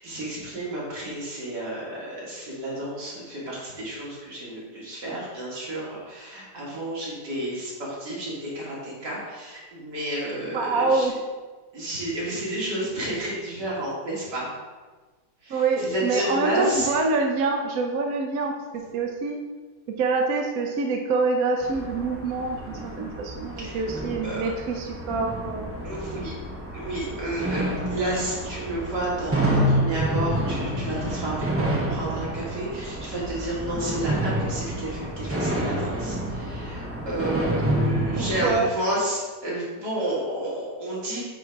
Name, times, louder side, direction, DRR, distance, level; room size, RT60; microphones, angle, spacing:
voice 1, 0.0-11.1 11.7-14.5 15.4-16.9 23.6-23.8 24.2-24.5 25.8-26.4 26.7-41.2, right 1 dB, 85° right, -6 dB, 2.9 m, -31 dB
voice 2, 10.5-11.2 15.5-19.4 20.0-25.7 26.1-26.3 38.0-38.7, right 3 dB, 65° right, 2 dB, 1.1 m, -26 dB
sound 1, 21.6-38.5, right 1 dB, 15° right, 0.5 m, -28 dB
9.0 x 3.7 x 4.6 m, 1.3 s
omnidirectional pair, 1.8 m